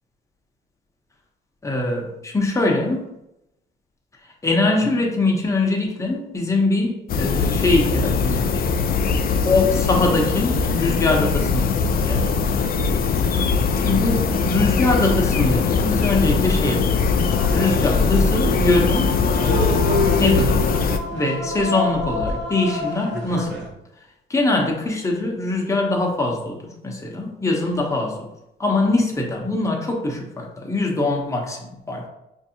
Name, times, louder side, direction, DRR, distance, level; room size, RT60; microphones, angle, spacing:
voice 1, 1.6-3.1 4.4-8.6 9.4-11.7 12.0-12.4 13.8-14.2 14.4-17.1 17.5-19.1 20.2-20.8 21.1-23.7 24.3-28.3 28.6-32.1, left 2 dB, 15° left, 0 dB, 0.8 m, -22 dB
sound 1, 7.1-21.0, left 5 dB, 50° left, 0.4 m, -21 dB
sound 2, 17.3-23.7, left 1 dB, 60° right, 1.0 m, -28 dB
4.5 x 2.6 x 2.8 m, 0.88 s
cardioid pair, 90°, 20 cm